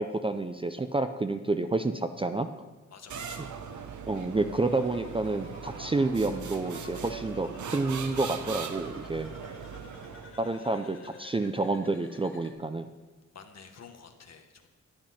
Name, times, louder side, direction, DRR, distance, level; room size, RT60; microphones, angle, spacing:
voice 1, 0.0-2.5 4.1-9.3 10.4-12.9, right 2 dB, 20° right, 9 dB, 0.4 m, -29 dB
voice 2, 2.9-3.5 10.2-11.2 13.3-14.7, left 6 dB, 60° left, 6 dB, 1.4 m, -51 dB
sound 1, 3.1-10.5, right 6 dB, 70° right, 1.0 m, -40 dB
sound 2, 4.5-12.5, left 2 dB, 45° left, 1.6 m, -50 dB
12.0 x 10.5 x 5.7 m, 1.3 s
wide cardioid pair, 165°, 30 cm